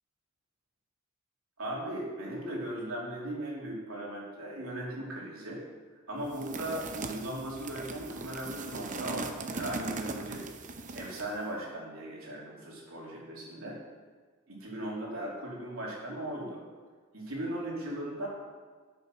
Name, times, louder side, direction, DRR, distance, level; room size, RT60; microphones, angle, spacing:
voice 1, 1.6-5.6 6.1-10.4 10.9-13.8 14.5-16.6 17.1-18.3, right 1 dB, 80° right, -4 dB, 3.1 m, -38 dB
sound 1, 6.3-11.4, right 3 dB, 35° right, 0.7 m, -39 dB
8.8 x 7.2 x 6.1 m, 1.5 s
head